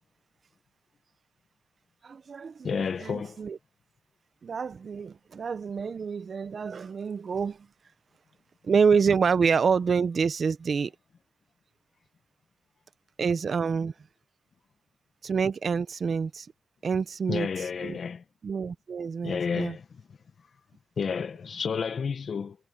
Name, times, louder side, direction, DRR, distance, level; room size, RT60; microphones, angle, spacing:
voice 1, 2.0-3.6 4.4-7.7 8.6-10.9 13.2-13.9 15.2-16.5 16.8-17.5 17.8-18.0 18.4-19.8, right 6 dB, 55° right, 1.0 m, -27 dB
voice 2, 2.6-3.4 17.3-18.2 19.2-19.8 21.0-22.6, left 6 dB, 60° left, 1.7 m, -30 dB
cardioid pair, 85°, 0 cm